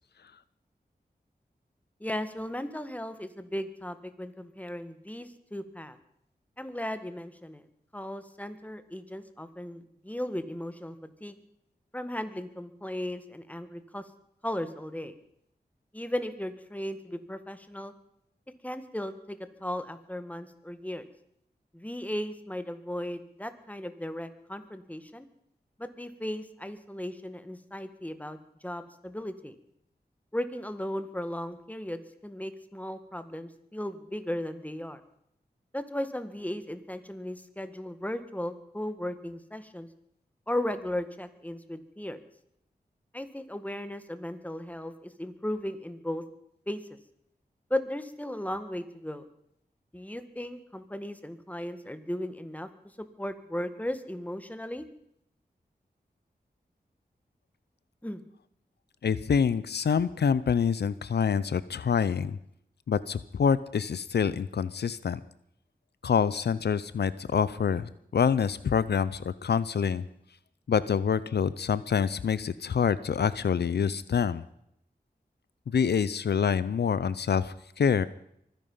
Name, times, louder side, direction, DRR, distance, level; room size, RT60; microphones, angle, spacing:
voice 1, 2.0-6.0 6.6-7.6 7.9-11.0 11.2-11.4 11.9-14.0 14.4-15.1 15.9-17.9 18.6-21.1 21.7-25.3 25.8-29.5 30.3-35.0 35.7-39.9 40.5-42.2 43.1-46.2 46.7-46.8 47.7-49.3 49.9-52.7 53.0-54.9 58.0-58.2, left 1 dB, 10° left, 10 dB, 1.8 m, -36 dB
voice 2, 59.0-62.4 62.9-65.2 66.0-70.0 70.7-74.4 75.7-78.1, left 7 dB, 80° left, 17 dB, 0.6 m, -26 dB
24.0 x 10.5 x 5.6 m, 0.73 s
cardioid pair, 55°, 17 cm